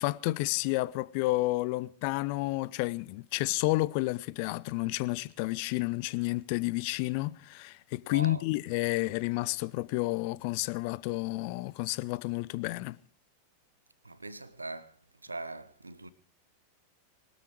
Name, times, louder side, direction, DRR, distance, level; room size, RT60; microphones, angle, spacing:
voice 1, 0.0-13.0, left 20 dB, 45° left, 0.6 m, -31 dB
voice 2, 8.0-8.4 14.0-15.0 15.2-16.1, right 2 dB, 80° right, 1.0 m, -41 dB
21.5 x 13.0 x 4.7 m
figure-of-eight pair, 90°, 0 cm